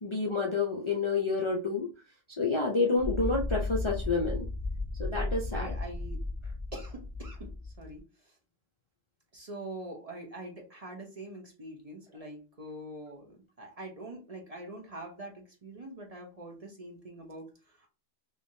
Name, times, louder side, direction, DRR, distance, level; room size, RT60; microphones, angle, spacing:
voice 1, 0.0-1.9 2.4-4.5 5.0-5.7, left 3 dB, 35° left, -2 dB, 0.5 m, -29 dB
sound 1, 3.0-8.0, left 2 dB, 5° right, 0.9 m, -35 dB
voice 2, 5.5-6.2 6.7-8.4 9.3-17.9, right 1 dB, 35° right, 0 dB, 0.8 m, -44 dB
3.4 x 3.2 x 2.7 m, 0.31 s
omnidirectional pair, 1.2 m